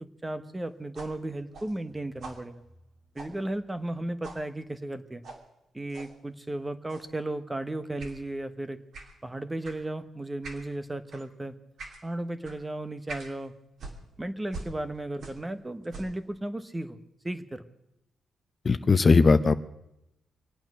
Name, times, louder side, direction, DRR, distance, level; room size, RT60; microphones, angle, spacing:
voice 1, 0.0-2.6 3.1-5.2 5.7-8.8 9.2-11.5 12.0-13.5 14.2-17.0 17.2-17.6, right 1 dB, 15° right, 11 dB, 1.0 m, -35 dB
sound 1, 0.9-4.0 4.2-4.5 5.2-5.4 5.9-6.1 6.9-7.2 8.0-8.2 8.9-9.2 9.6-9.8 10.4-10.7 11.1-11.3 11.8-12.0 12.4-12.6 13.1-13.3 13.8-15.5 15.8-16.2, right 3 dB, 70° right, 2.7 m, -44 dB
voice 2, 18.6-19.5, left 4 dB, 35° left, 10 dB, 0.7 m, -19 dB
25.0 x 9.0 x 6.0 m, 0.84 s
cardioid pair, 105°, 0 cm